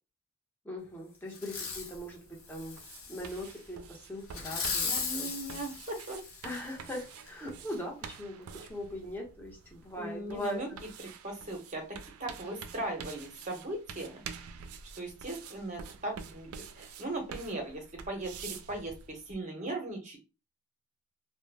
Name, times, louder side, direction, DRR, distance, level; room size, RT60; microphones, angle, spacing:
voice 1, 0.6-2.8 3.1-5.3 6.4-10.8, left 1 dB, 10° left, -2 dB, 0.7 m, -40 dB
Fireworks, 1.3-2.0 2.5-3.5 4.3-6.7 7.3-7.4, left 5 dB, 75° left, 0.7 m, -37 dB
sound 1, 1.7-19.3, right 6 dB, 85° right, 0.3 m, -48 dB
voice 2, 4.8-6.2 10.0-10.7 11.0-14.2 14.9-20.2, right 1 dB, 35° right, 3 dB, 0.7 m, -38 dB
2.1 x 2.0 x 3.2 m, 0.30 s
head